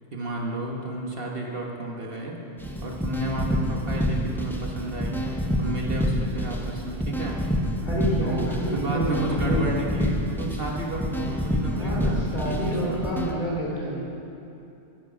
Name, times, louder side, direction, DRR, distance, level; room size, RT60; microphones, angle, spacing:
voice 1, 0.1-2.4 2.8-5.2 5.6-7.4 8.2-12.6 12.9-13.0, right 2 dB, 50° right, 0 dB, 1.4 m, -32 dB
sound 1, 2.6-13.3, equal, ahead, 0.8 m, -28 dB
voice 2, 7.8-9.8 11.6-14.0, equal, 40° left, -5 dB, 3.4 m, -28 dB
14.5 x 11.0 x 5.1 m, 2.8 s
omnidirectional pair, 1.2 m